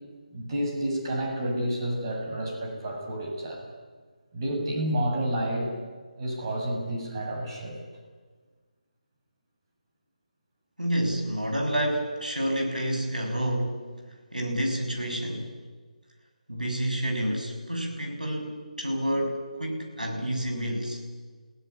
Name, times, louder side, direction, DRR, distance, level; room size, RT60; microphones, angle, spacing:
voice 1, 0.3-3.7 4.3-5.7 6.2-7.8, right 1 dB, 35° right, 0 dB, 7.6 m, -30 dB
voice 2, 10.8-13.8 14.3-15.5 16.5-21.0, right 1 dB, 90° right, 2 dB, 6.4 m, -29 dB
30.0 x 16.5 x 9.9 m, 1.5 s
figure-of-eight pair, 150°, 4 cm